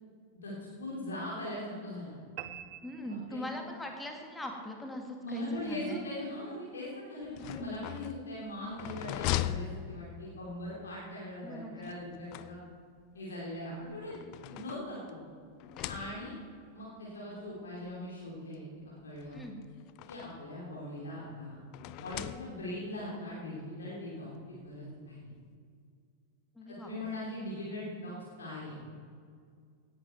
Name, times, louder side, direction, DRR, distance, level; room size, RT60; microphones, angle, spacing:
voice 1, 0.8-2.2 3.1-3.4 5.2-12.6 13.1-15.2 15.9-16.3 16.7-18.6 19.0-19.4 20.1-21.6 22.0-25.1 26.7-28.1 28.4-28.8, left 1 dB, 65° left, -6 dB, 3.3 m, -40 dB
sound 1, 2.4-3.9, right 12 dB, 40° right, 0.7 m, -46 dB
voice 2, 2.8-6.0 11.4-11.9 15.7-16.1 19.3-19.6 26.6-27.1, left 1 dB, 5° left, 2 dB, 2.1 m, -41 dB
sound 2, 7.2-10.5 11.8-13.0 13.8-15.2 15.6-16.5 17.5-17.6 17.9-18.0 19.2-20.5 21.7-22.9, left 14 dB, 45° left, 0.4 m, -39 dB
17.0 x 10.5 x 4.6 m, 2.2 s
figure-of-eight pair, 90°, 0 cm